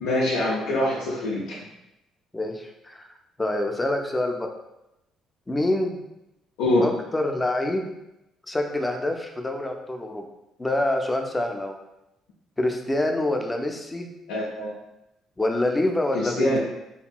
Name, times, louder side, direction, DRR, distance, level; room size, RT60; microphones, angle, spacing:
voice 1, 0.0-1.6 6.6-6.9 14.3-14.7 16.1-16.6, left 1 dB, 90° left, -6 dB, 0.4 m, -24 dB
voice 2, 2.3-3.0 3.4-4.5 5.5-6.0 6.8-7.9 8.5-10.2 10.6-11.8 12.6-14.1 15.4-16.6, left 1 dB, 15° left, 3 dB, 0.4 m, -26 dB
2.8 x 2.6 x 2.3 m, 0.88 s
cardioid pair, 85°, 0 cm